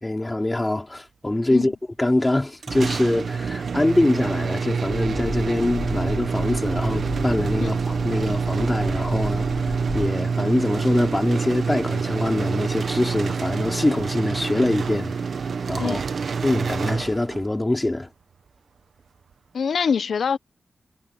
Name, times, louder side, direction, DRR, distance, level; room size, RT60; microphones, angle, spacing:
voice 1, 0.0-15.1 15.7-16.0 16.4-18.1, left 1 dB, 20° left, 5.0 m, -24 dB
sound 1, 2.6-17.6, right 5 dB, 75° right, 1.4 m, -26 dB
sound 2, 4.9-10.1, left 3 dB, 40° left, 1.7 m, -34 dB
voice 2, 19.5-20.4, left 6 dB, 80° left, 0.9 m, -24 dB
cardioid pair, 50°, 0 cm